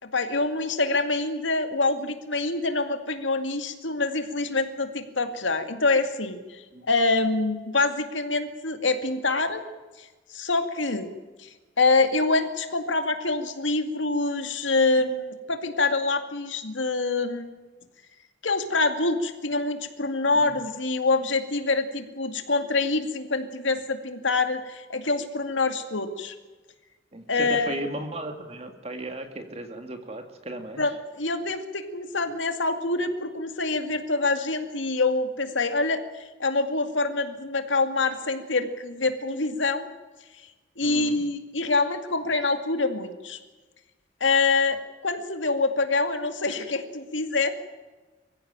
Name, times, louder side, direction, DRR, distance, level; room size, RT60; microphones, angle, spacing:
voice 1, 0.0-9.6 10.3-11.1 11.4-11.5 11.8-17.5 18.4-26.3 27.3-27.8 30.8-39.9 40.8-43.4 44.2-47.5, left 3 dB, 85° left, 7 dB, 2.3 m, -25 dB
voice 2, 27.1-30.8 40.8-41.2, right 1 dB, 35° right, 6 dB, 2.2 m, -36 dB
24.0 x 15.5 x 9.0 m, 1.2 s
head